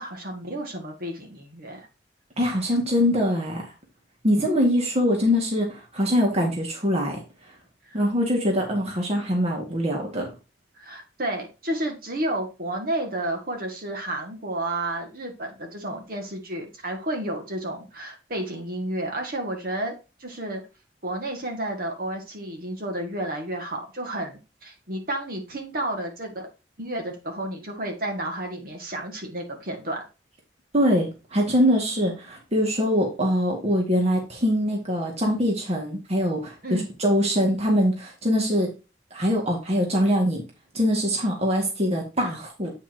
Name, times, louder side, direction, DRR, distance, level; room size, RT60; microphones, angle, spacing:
voice 1, 0.0-1.9 7.9-8.0 10.8-19.9 20.2-20.6 21.0-26.5 26.8-30.0 36.6-36.9, right 1 dB, 55° right, 2 dB, 2.0 m, -31 dB
voice 2, 2.4-3.7 4.2-7.2 7.9-10.3 30.7-38.7 39.1-40.4 40.7-42.7, equal, 35° right, 1 dB, 2.0 m, -23 dB
8.6 x 5.6 x 2.9 m, 0.29 s
head